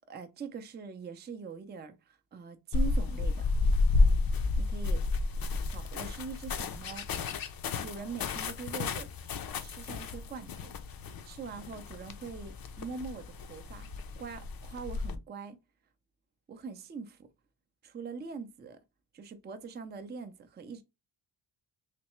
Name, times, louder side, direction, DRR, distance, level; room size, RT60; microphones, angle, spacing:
voice 1, 0.0-3.5 4.6-5.0 5.7-7.1 7.8-9.1 9.6-10.7 11.2-13.9 14.2-15.6 16.5-17.3 17.8-18.8 19.1-20.8, right 5 dB, 25° right, 0.4 m, -43 dB
sound 1, 2.7-15.2, left 3 dB, 50° left, 0.5 m, -31 dB
3.3 x 3.1 x 3.0 m
wide cardioid pair, 165°, 45 cm